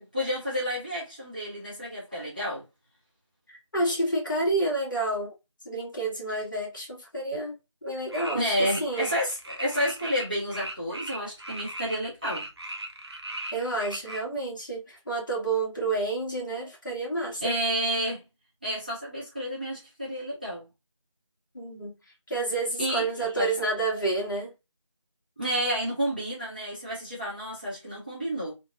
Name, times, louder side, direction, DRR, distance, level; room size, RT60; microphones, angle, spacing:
voice 1, 0.0-2.6 8.3-12.5 17.4-18.2 18.6-20.7 22.8-23.5 25.4-28.5, equal, 15° right, 0.6 m, -30 dB
voice 2, 3.5-5.3 5.6-7.5 7.8-9.1 13.5-17.5 21.5-22.0 22.3-24.5, right 2 dB, 40° left, 1.3 m, -29 dB
sound 1, 8.1-12.0 12.2-14.2, right 1 dB, 55° right, 0.7 m, -38 dB
3.2 x 2.1 x 2.3 m
figure-of-eight pair, 165°, 16 cm